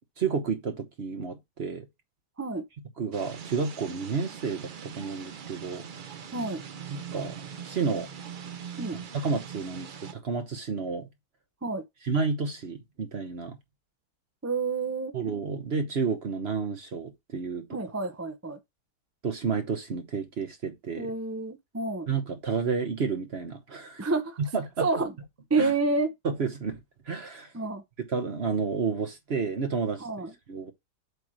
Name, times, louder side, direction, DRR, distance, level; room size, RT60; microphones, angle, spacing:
voice 1, 0.2-1.9 3.0-5.8 6.9-7.4 7.6-8.1 9.2-11.1 12.0-13.6 15.1-17.8 19.2-21.1 22.1-24.1 24.5-24.9 25.6-25.7 26.2-26.8 27.1-27.5 28.1-30.1 30.5-30.7, right 5 dB, 45° right, 1.0 m, -31 dB
sound 1, 3.1-10.1, right 7 dB, 75° right, 0.4 m, -41 dB
voice 2, 14.4-15.1 17.7-18.6 21.0-22.1 24.0-24.4 24.8-25.1 25.5-26.1 27.5-27.8 30.0-30.3, right 3 dB, 15° right, 0.5 m, -28 dB
8.0 x 3.1 x 6.2 m
omnidirectional pair, 1.8 m